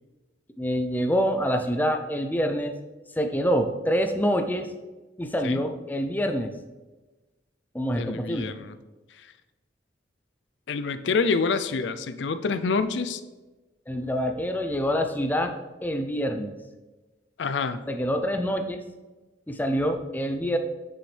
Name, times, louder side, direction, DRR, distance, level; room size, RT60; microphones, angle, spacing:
voice 1, 0.6-2.7 3.2-4.7 5.2-6.5 7.7-8.5 13.9-15.5 15.8-16.5 17.9-18.8 19.5-20.6, equal, 10° left, 6 dB, 0.5 m, -26 dB
voice 2, 7.9-8.7 9.2-9.3 10.7-13.2 17.4-17.8, left 4 dB, 80° left, 11 dB, 0.5 m, -27 dB
7.8 x 6.2 x 3.3 m, 1.2 s
head